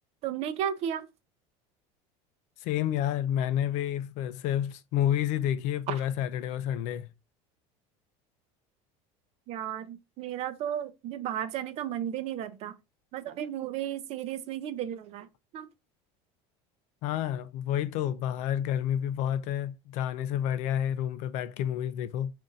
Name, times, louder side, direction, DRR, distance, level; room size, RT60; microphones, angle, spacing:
voice 1, 0.2-1.1 5.9-6.0 9.5-12.7 13.1-15.3 15.5-15.7, right 10 dB, 45° right, 0.5 m, -34 dB
voice 2, 2.6-7.1 17.0-22.3, left 10 dB, 55° left, 0.4 m, -29 dB
4.0 x 2.6 x 3.7 m
cardioid pair, 150°, 14 cm